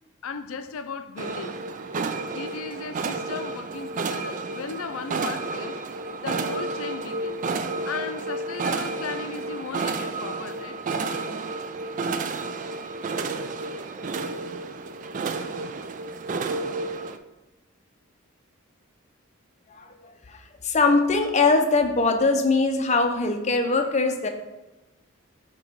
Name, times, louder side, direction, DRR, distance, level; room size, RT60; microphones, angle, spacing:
voice 1, 0.2-1.6 2.3-5.8 6.2-7.4 7.8-10.8, left 5 dB, 80° left, 0.5 m, -36 dB
sound 1, 1.2-17.2, right 3 dB, 40° right, 0.3 m, -31 dB
voice 2, 19.7-24.3, left 3 dB, 35° left, 0.6 m, -22 dB
7.6 x 3.0 x 4.6 m
head